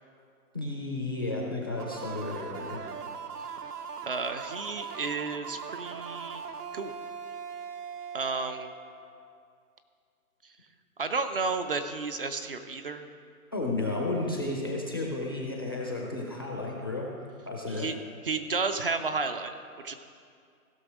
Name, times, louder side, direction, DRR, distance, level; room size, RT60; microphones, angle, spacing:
voice 1, 0.5-2.8 13.5-17.1 17.5-17.9, left 2 dB, 15° left, -1 dB, 0.5 m, -32 dB
sound 1, 1.8-9.3, right 6 dB, 85° right, 0.9 m, -40 dB
voice 2, 4.1-6.4 6.7-6.9 8.1-8.7 11.0-13.0 17.7-18.0 18.2-19.5 19.8-19.9, right 4 dB, 40° right, 8 dB, 0.5 m, -32 dB
16.0 x 6.3 x 4.8 m, 2.3 s
hypercardioid pair, 150°, 45 cm